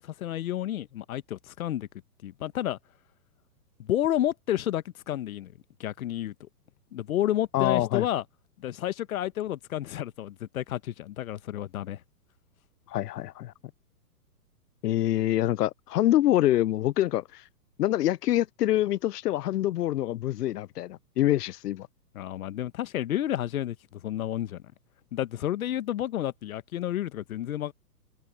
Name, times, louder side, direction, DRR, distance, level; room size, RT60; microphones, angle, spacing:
voice 1, 0.0-1.9 2.2-2.8 3.8-5.5 5.8-6.3 6.9-8.2 8.6-12.0 22.1-24.6 25.1-27.7, left 12 dB, 60° left, 1.4 m, -30 dB
voice 2, 7.5-8.1 12.9-13.5 14.8-17.4 17.8-21.9, left 14 dB, 75° left, 0.6 m, -25 dB
hypercardioid pair, 145°, 47 cm